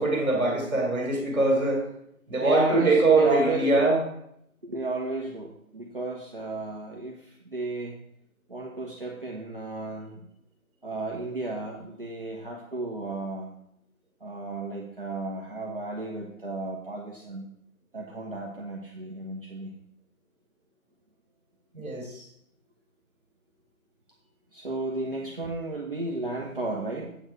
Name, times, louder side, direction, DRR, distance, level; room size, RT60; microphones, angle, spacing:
voice 1, 0.0-1.8 2.3-4.0 21.7-22.2, right 3 dB, 10° right, -15 dB, 2.0 m, -23 dB
voice 2, 2.3-3.8 4.6-8.0 8.5-10.1 10.8-13.5 14.2-17.5 17.9-19.7 24.5-27.2, right 2 dB, 40° right, -2 dB, 1.0 m, -33 dB
7.9 x 7.2 x 4.6 m, 0.74 s
figure-of-eight pair, 175°, 44 cm